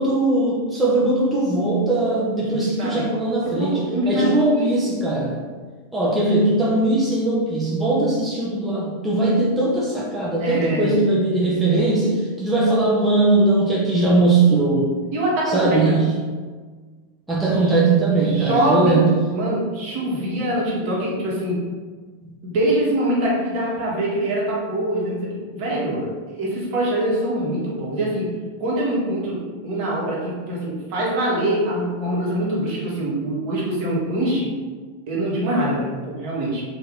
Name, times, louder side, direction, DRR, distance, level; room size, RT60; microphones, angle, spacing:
voice 1, 0.0-3.8 4.1-5.4 5.9-14.9 15.5-16.1 17.3-19.1, right 2 dB, 10° right, -6 dB, 0.5 m, -20 dB
voice 2, 2.4-3.1 3.6-4.7 10.4-11.0 15.1-16.0 17.5-17.8 18.2-19.0 19.3-21.6 22.4-26.0 26.4-28.3 28.6-29.4 29.6-34.5 35.1-36.6, right 1 dB, 45° right, -6 dB, 1.2 m, -24 dB
2.8 x 2.6 x 3.5 m, 1.5 s
figure-of-eight pair, 90°, 0 cm